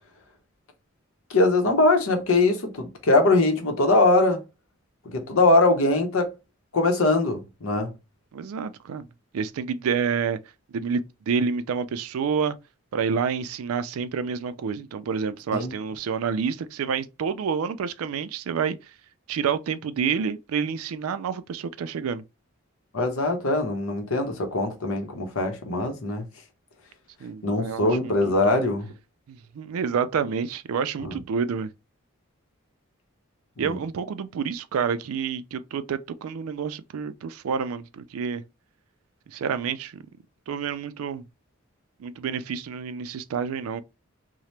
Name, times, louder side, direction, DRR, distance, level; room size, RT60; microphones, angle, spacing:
voice 1, 1.3-4.4 5.1-6.3 6.7-7.9 15.5-15.7 22.9-26.3 27.4-28.9 31.0-31.2 33.6-33.8, left 2 dB, 75° left, 0.8 m, -22 dB
voice 2, 8.3-9.1 9.3-10.4 10.7-12.6 12.9-18.8 19.3-22.2 27.2-28.5 29.3-31.7 33.6-38.4 39.3-40.0 40.5-41.2 42.0-43.8, right 6 dB, 80° right, 0.3 m, -28 dB
2.8 x 2.1 x 3.1 m
head